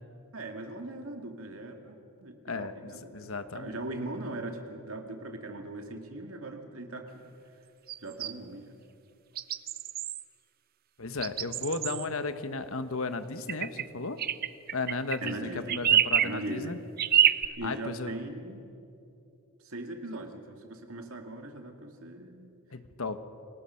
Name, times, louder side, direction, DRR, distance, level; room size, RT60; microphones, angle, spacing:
voice 1, 0.3-3.1 3.5-7.2 8.0-8.8 15.2-15.8 16.2-16.8 17.6-18.6 19.6-22.5, right 2 dB, 70° right, 4 dB, 2.3 m, -40 dB
voice 2, 2.4-3.8 11.0-14.2 14.7-16.8 17.6-18.1 22.7-23.2, left 3 dB, 65° left, 10 dB, 1.3 m, -35 dB
sound 1, 7.9-8.3 9.4-10.2 11.2-12.1 13.5-13.9 14.2-15.4 15.7-16.3 17.0-17.5, right 9 dB, 45° right, 0.6 m, -26 dB
29.0 x 19.5 x 5.8 m, 2.8 s
head